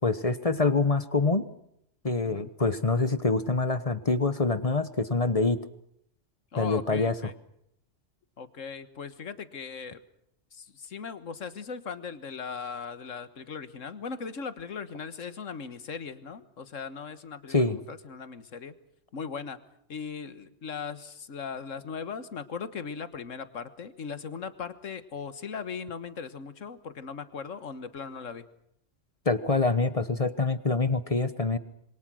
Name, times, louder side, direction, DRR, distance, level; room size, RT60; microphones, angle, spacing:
voice 1, 0.0-1.4 2.0-5.6 6.6-7.1 17.5-17.8 29.2-31.6, left 3 dB, 30° left, 13 dB, 1.1 m, -25 dB
voice 2, 6.5-7.3 8.4-10.0 10.5-18.7 19.1-19.6 19.9-28.4, left 6 dB, 80° left, 12 dB, 1.8 m, -38 dB
27.0 x 23.5 x 6.3 m, 0.73 s
omnidirectional pair, 1.3 m